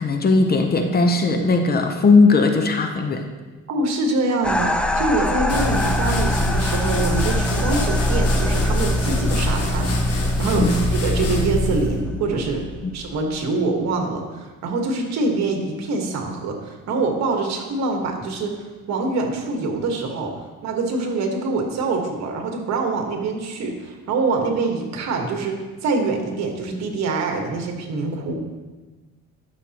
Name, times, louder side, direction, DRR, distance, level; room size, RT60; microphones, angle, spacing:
voice 1, 0.0-3.2 10.6-10.9, left 3 dB, 35° left, 5 dB, 0.8 m, -18 dB
voice 2, 3.7-12.6 12.9-20.3 20.6-28.4, right 3 dB, 65° right, 2 dB, 1.5 m, -25 dB
sound 1, 4.4-13.4, left 1 dB, 5° left, 0.3 m, -27 dB
sound 2, 5.5-12.0, left 1 dB, 55° left, 1.5 m, -23 dB
12.0 x 6.7 x 2.9 m, 1.3 s
cardioid pair, 130°, 29 cm